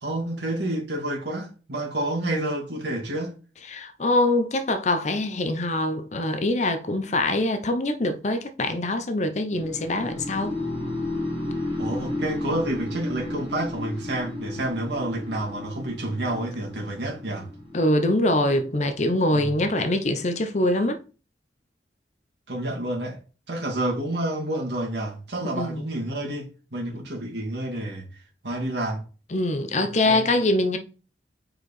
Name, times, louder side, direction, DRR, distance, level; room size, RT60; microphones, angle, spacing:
voice 1, 0.0-3.3 11.8-17.5 19.3-19.5 22.5-23.2 23.5-28.1 28.4-29.0 29.8-30.3, right 1 dB, 70° right, 2.1 m, -29 dB
voice 2, 3.7-10.6 17.7-21.0 25.5-25.8 29.3-30.8, left 1 dB, 40° left, 0.6 m, -24 dB
sound 1, 9.5-19.5, left 1 dB, 30° right, 2.4 m, -33 dB
5.3 x 4.5 x 4.2 m
head